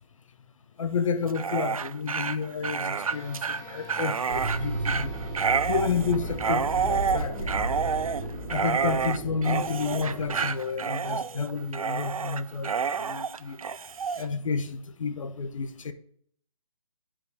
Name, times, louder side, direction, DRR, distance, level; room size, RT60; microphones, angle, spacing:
voice 1, 0.8-5.2 5.7-7.6 8.5-13.6 14.2-15.9, left 5 dB, 65° left, 0.7 m, -30 dB
Dog, 1.2-14.3, right 6 dB, 85° right, 0.4 m, -29 dB
sound 1, 2.9-12.6, left 3 dB, 45° left, 2.4 m, -46 dB
sound 2, 4.3-10.4, right 1 dB, 15° right, 2.1 m, -34 dB
7.4 x 4.9 x 3.3 m
figure-of-eight pair, 145°, 18 cm